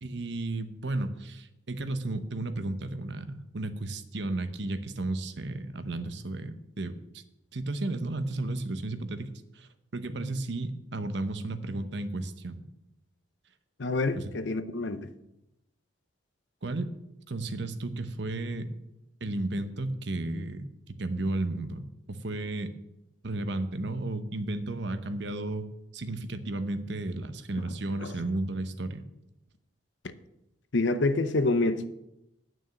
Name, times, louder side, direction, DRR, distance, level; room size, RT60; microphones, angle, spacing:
voice 1, 0.0-7.2 7.5-12.6 14.1-14.2 16.6-16.9 17.3-18.7 19.2-20.7 21.0-22.7 23.2-25.6 25.9-29.0, right 2 dB, 60° right, 0.9 m, -33 dB
voice 2, 13.8-15.1 28.0-28.1 30.7-31.9, left 2 dB, 65° left, 0.7 m, -27 dB
9.2 x 6.2 x 7.8 m
head